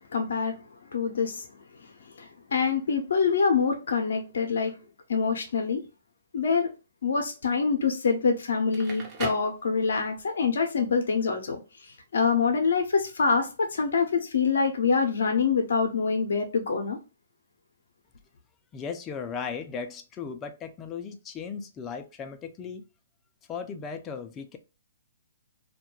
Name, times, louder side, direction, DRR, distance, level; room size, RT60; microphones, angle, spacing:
voice 1, 0.1-0.5 0.9-1.4 2.5-4.7 5.1-5.8 6.3-6.7 7.0-11.6 12.1-17.0, left 5 dB, 70° left, 0.6 m, -25 dB
Crackle, 8.6-10.3, right 3 dB, 30° right, 0.8 m, -38 dB
voice 2, 18.7-22.8 23.5-24.6, left 6 dB, 20° left, 0.3 m, -36 dB
2.3 x 2.1 x 3.0 m
hypercardioid pair, 135°, 0 cm